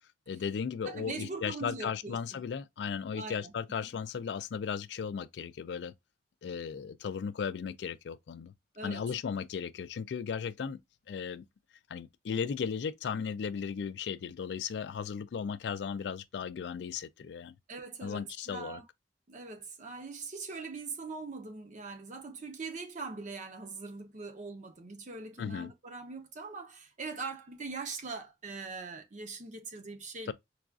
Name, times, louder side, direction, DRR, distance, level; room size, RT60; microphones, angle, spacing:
voice 1, 0.3-5.9 6.4-8.5 8.8-10.8 11.1-11.5 11.9-17.5 18.0-18.8 25.4-25.7 30.3-30.4, left 6 dB, 70° left, 0.3 m, -36 dB
voice 2, 0.8-2.4 3.1-3.5 8.8-9.1 17.7-18.8 19.3-30.3, right 4 dB, 45° right, 0.7 m, -42 dB
4.7 x 2.4 x 2.3 m
head